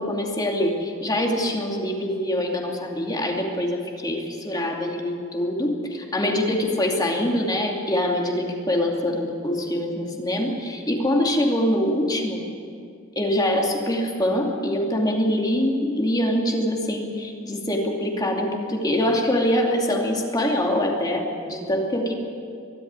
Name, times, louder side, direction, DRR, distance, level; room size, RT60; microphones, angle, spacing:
voice 1, 0.0-12.4 13.2-22.1, left 1 dB, 20° left, 0 dB, 2.6 m, -24 dB
23.5 x 12.5 x 9.6 m, 2.3 s
head